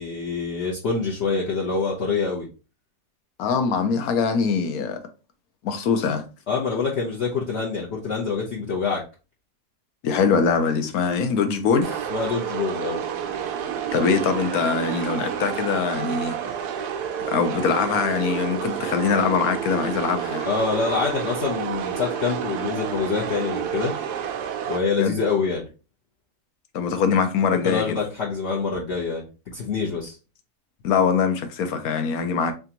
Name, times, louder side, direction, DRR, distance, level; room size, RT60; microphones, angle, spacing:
voice 1, 0.0-2.5 6.5-9.0 12.1-13.0 20.5-23.9 24.7-25.7 27.6-30.2, left 5 dB, 50° left, 1.0 m, -26 dB
voice 2, 3.4-5.0 5.6-6.2 10.0-12.0 13.9-16.4 17.3-20.5 25.0-25.2 26.7-28.0 30.8-32.5, left 5 dB, 70° left, 1.2 m, -23 dB
sound 1, 11.8-24.8, right 8 dB, 85° right, 1.2 m, -29 dB
3.7 x 3.5 x 2.8 m
omnidirectional pair, 1.6 m